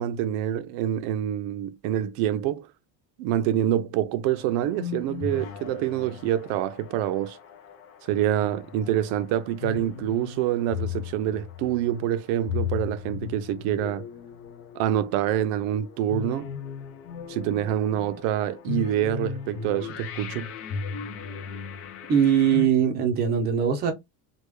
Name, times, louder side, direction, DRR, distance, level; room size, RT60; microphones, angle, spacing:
voice 1, 0.0-2.6 3.2-7.4 8.1-14.0 14.7-16.5 17.3-20.5, right 11 dB, 75° right, 0.6 m, -26 dB
sound 1, 4.3-22.7, left 7 dB, 35° left, 0.4 m, -37 dB
voice 2, 22.1-23.9, right 8 dB, 25° right, 0.5 m, -21 dB
3.4 x 2.3 x 3.1 m
cardioid pair, 175°, 44 cm